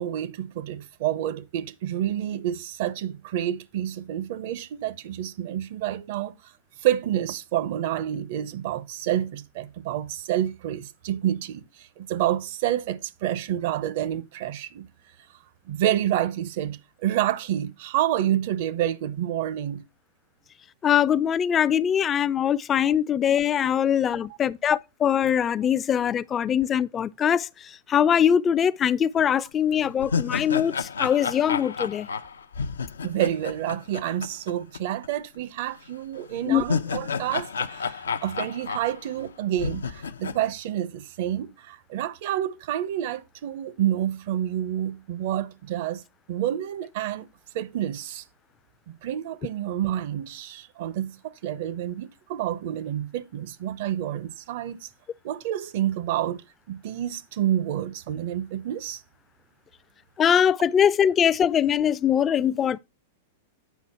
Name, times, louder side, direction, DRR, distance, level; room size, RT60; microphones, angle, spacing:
voice 1, 0.0-6.3 6.8-14.9 15.7-19.8 24.1-24.2 33.0-46.0 46.3-47.3 47.5-48.2 48.9-54.9 55.2-59.0, right 12 dB, 60° right, 0.7 m, -28 dB
voice 2, 20.8-27.5 27.9-32.1 36.5-36.6 60.2-62.8, left 9 dB, 25° left, 0.4 m, -22 dB
sound 1, 29.2-29.3 29.7-34.8 35.0-35.1 36.3-39.3 39.6-40.4, left 5 dB, 90° left, 0.6 m, -31 dB
8.3 x 5.4 x 4.2 m
hypercardioid pair, 110°, 0 cm